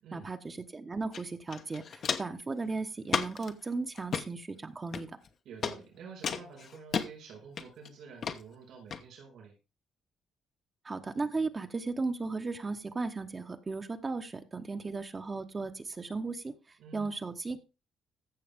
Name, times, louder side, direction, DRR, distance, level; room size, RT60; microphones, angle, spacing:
voice 1, 0.1-5.2 10.8-17.6, right 3 dB, 30° right, 6 dB, 1.1 m, -36 dB
Walk footsteps, 1.1-1.2 1.5-2.4 3.1-3.5 4.0-4.3 4.9-5.3 5.6-5.8 6.2-7.1 7.6-7.9 8.2-8.4 8.9-9.0, left 6 dB, 55° left, 1.1 m, -33 dB
voice 2, 5.4-9.6 16.8-17.1, right 5 dB, 75° right, 1 dB, 5.6 m, -49 dB
15.0 x 6.3 x 3.6 m, 0.28 s
cardioid pair, 90°, 0 cm